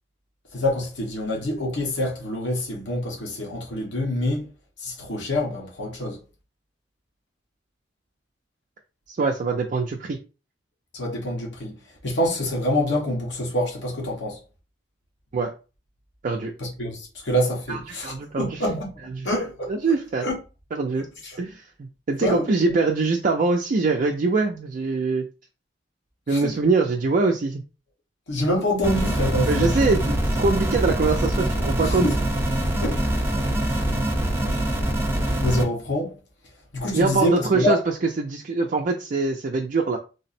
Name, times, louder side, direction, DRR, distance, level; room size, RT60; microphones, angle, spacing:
voice 1, 0.5-4.5 4.8-6.2 10.9-11.7 12.0-14.4 16.6-18.9 19.2-19.7 20.2-20.4 21.2-21.4 22.2-22.7 26.3-26.5 28.3-29.9 31.9-32.1 32.8-33.1 33.6-34.1 35.4-36.1 36.7-37.8, left 1 dB, 70° left, 1.2 m, -26 dB
voice 2, 9.1-10.2 15.3-15.5 16.2-16.5 17.7-18.8 19.1-19.3 19.7-20.3 20.7-21.1 21.4-25.3 26.3-27.6 29.5-32.1 36.9-40.0, right 3 dB, 45° right, 0.4 m, -23 dB
sound 1, 28.8-35.6, right 1 dB, 15° right, 0.8 m, -24 dB
3.4 x 2.0 x 4.2 m
head